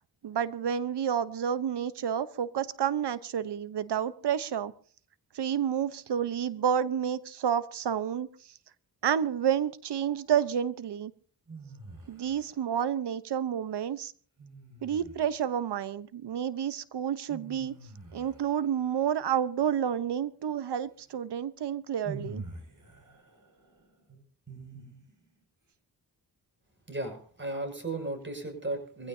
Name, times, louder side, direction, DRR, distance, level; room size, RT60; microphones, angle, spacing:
voice 1, 0.2-4.7 5.3-8.3 9.0-11.1 12.1-14.1 14.8-17.8 18.1-22.4, right 8 dB, 75° right, 15 dB, 1.0 m, -30 dB
sound 1, 11.5-12.6 14.4-15.5 17.3-19.2 21.1-21.2 22.0-25.3, right 3 dB, 50° right, 6.4 m, -46 dB
voice 2, 26.9-29.1, right 2 dB, 25° right, 5 dB, 6.5 m, -35 dB
23.5 x 16.0 x 2.8 m, 0.44 s
cardioid pair, 55°, 41 cm